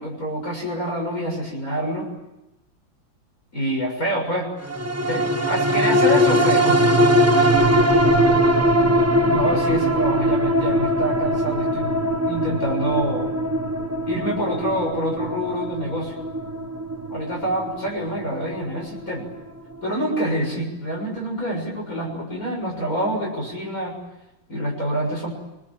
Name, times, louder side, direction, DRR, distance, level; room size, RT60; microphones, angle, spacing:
voice 1, 0.0-2.1 3.5-4.5 5.1-7.0 9.3-13.3 14.1-16.2 17.1-19.3 19.8-24.0 24.5-25.3, right 1 dB, 40° left, 0 dB, 7.2 m, -26 dB
sound 1, 4.7-19.4 19.8-19.9, equal, 10° right, 0.9 m, -21 dB
29.0 x 22.5 x 8.9 m, 0.96 s
omnidirectional pair, 2.2 m